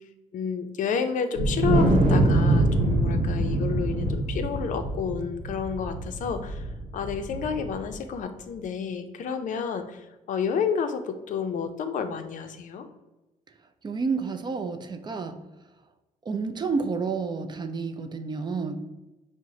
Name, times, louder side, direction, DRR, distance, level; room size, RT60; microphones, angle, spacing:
voice 1, 0.3-6.7 6.9-12.9, left 6 dB, 55° left, 8 dB, 0.5 m, -30 dB
Wind, 1.4-7.9, right 1 dB, 65° right, 1.0 m, -24 dB
voice 2, 13.8-15.4 16.3-18.8, right 4 dB, 30° right, 8 dB, 0.4 m, -30 dB
4.6 x 2.1 x 3.8 m, 1.0 s
cardioid pair, 85°, 15 cm